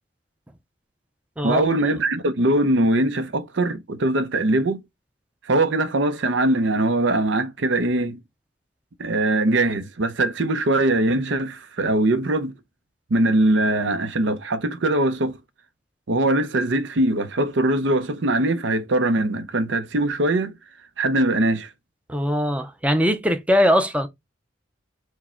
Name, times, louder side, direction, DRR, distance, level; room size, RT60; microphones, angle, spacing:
voice 1, 1.4-4.8 5.4-8.2 9.0-12.5 13.1-15.4 16.1-20.5 21.0-21.7, right 2 dB, 70° right, 0.7 m, -21 dB
voice 2, 22.1-24.1, equal, 5° right, 0.5 m, -21 dB
4.7 x 2.2 x 4.3 m
head